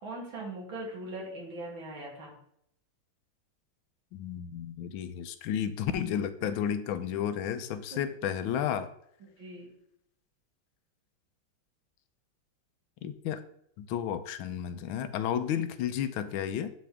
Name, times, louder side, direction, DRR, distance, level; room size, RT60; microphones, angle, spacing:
voice 1, 0.0-2.4 6.4-6.5 7.9-8.0 9.2-9.7, right 2 dB, 70° right, -2 dB, 3.1 m, -40 dB
voice 2, 4.1-8.9 13.0-13.4 13.8-16.7, left 9 dB, 80° left, 11 dB, 1.4 m, -32 dB
11.5 x 4.3 x 3.6 m, 0.73 s
omnidirectional pair, 2.2 m